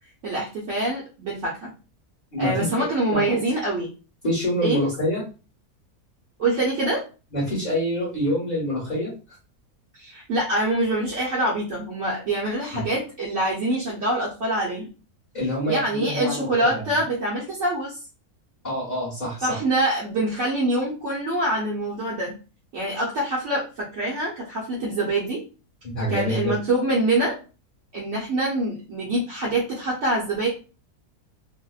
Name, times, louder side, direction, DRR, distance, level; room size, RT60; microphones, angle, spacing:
voice 1, 0.2-1.7 2.4-3.9 4.6-4.9 6.4-7.0 10.0-14.9 15.7-18.0 19.4-22.4 22.7-25.4 26.1-27.4 27.9-30.5, right 1 dB, 60° right, -5 dB, 0.9 m, -25 dB
voice 2, 2.3-3.3 4.2-5.2 7.3-9.1 12.7-12.8 15.3-16.9 18.6-19.6 25.8-26.5, equal, 35° left, -7 dB, 1.0 m, -26 dB
2.7 x 2.1 x 2.3 m, 0.34 s
omnidirectional pair, 1.6 m